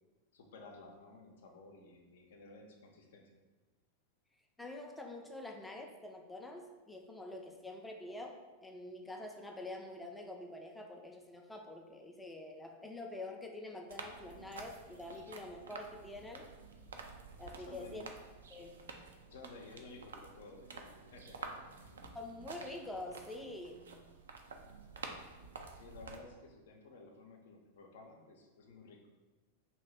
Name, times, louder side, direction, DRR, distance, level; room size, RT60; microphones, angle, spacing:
voice 1, 0.3-3.3 17.6-18.0 19.3-21.7 25.7-29.0, left 3 dB, 60° left, 2 dB, 0.6 m, -54 dB
voice 2, 4.6-16.5 17.4-18.1 18.5-18.8 22.1-23.8, left 2 dB, 5° left, 2 dB, 0.5 m, -46 dB
sound 1, 13.9-26.2, right 4 dB, 70° right, 0.4 m, -50 dB
2.9 x 2.7 x 4.4 m, 1.2 s
figure-of-eight pair, 90°, 0 cm